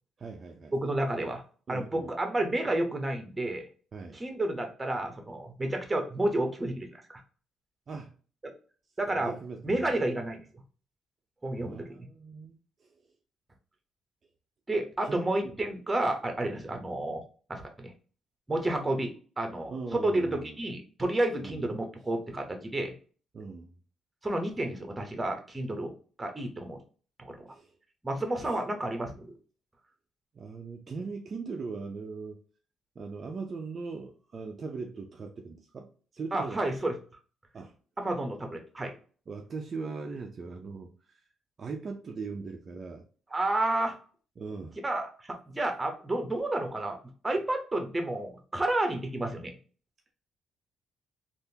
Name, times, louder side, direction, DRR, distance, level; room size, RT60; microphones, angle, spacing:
voice 1, 0.2-0.7 1.7-2.1 3.9-4.2 7.9-8.1 9.2-10.0 11.6-13.0 15.0-15.6 16.6-16.8 19.7-20.6 21.4-21.6 23.3-23.7 27.5-27.7 28.4-28.6 30.3-32.4 33.0-36.6 37.5-37.7 39.3-41.3 41.6-43.0 44.4-44.8, right 4 dB, 45° right, 0.5 m, -40 dB
voice 2, 0.7-1.4 1.7-3.7 4.1-7.0 8.4-8.5 9.0-9.3 9.6-10.4 11.4-12.1 14.7-17.2 17.5-17.9 18.5-22.9 24.2-25.9 26.2-26.8 27.2-27.4 28.0-29.3 36.3-36.9 38.0-38.9 43.3-44.0 44.8-47.0 47.2-49.5, right 1 dB, 20° right, 0.9 m, -30 dB
3.5 x 2.5 x 2.8 m
cardioid pair, 90°, 0 cm